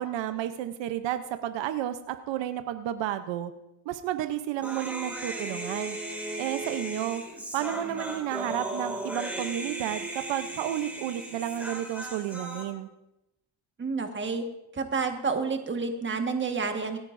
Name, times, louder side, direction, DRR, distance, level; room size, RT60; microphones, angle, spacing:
voice 1, 0.0-3.5 3.9-6.0 6.4-7.2 7.5-12.9, right 12 dB, 80° right, 9 dB, 0.8 m, -32 dB
Human voice, 4.6-12.6, right 1 dB, 5° right, 2.3 m, -36 dB
voice 2, 13.8-14.4 14.7-17.0, right 4 dB, 25° right, 5 dB, 1.5 m, -29 dB
26.0 x 9.6 x 2.6 m, 0.90 s
cardioid pair, 115°, 43 cm